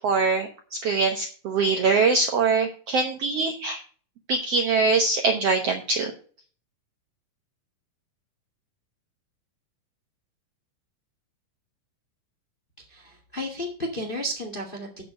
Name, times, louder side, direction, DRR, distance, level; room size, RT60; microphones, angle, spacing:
voice 1, 0.0-3.8 4.3-6.1, right 4 dB, 65° right, 4 dB, 1.6 m, -23 dB
voice 2, 12.9-15.0, equal, 25° left, 2 dB, 1.3 m, -33 dB
8.1 x 6.8 x 6.4 m, 0.42 s
omnidirectional pair, 4.0 m